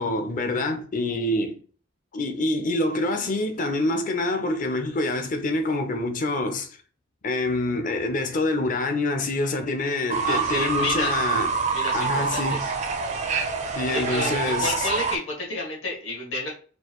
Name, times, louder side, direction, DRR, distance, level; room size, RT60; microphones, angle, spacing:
voice 1, 0.0-1.6 2.1-6.8 7.2-11.5 11.9-12.6 13.8-14.9, left 2 dB, 40° left, 0.6 m, -26 dB
Fowl / Bird, 10.1-15.2, right 5 dB, 35° right, 0.4 m, -26 dB
voice 2, 10.2-11.2 11.7-12.7 13.9-16.5, left 2 dB, 70° left, 1.9 m, -31 dB
4.5 x 2.5 x 2.9 m
head